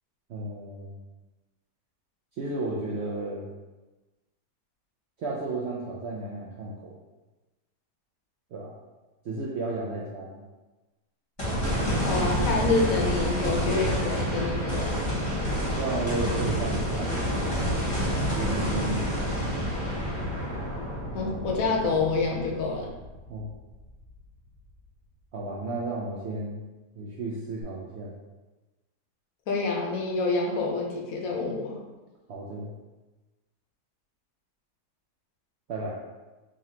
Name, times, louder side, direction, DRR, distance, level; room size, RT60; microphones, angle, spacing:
voice 1, 0.3-1.0 2.4-3.5 5.2-6.9 8.5-8.8 9.2-10.4 15.8-17.7 18.3-19.3 23.3-23.5 25.3-26.6 27.0-28.1 32.3-32.7 35.7-36.0, right 2 dB, 80° right, -4 dB, 0.6 m, -33 dB
sound 1, 11.4-23.7 24.2-24.3 27.6-27.7, equal, 20° left, 1.2 m, -28 dB
voice 2, 12.0-15.0 21.1-22.9 29.5-31.8, left 3 dB, 65° left, 0 dB, 1.0 m, -27 dB
3.8 x 3.1 x 2.7 m, 1.1 s
omnidirectional pair, 1.7 m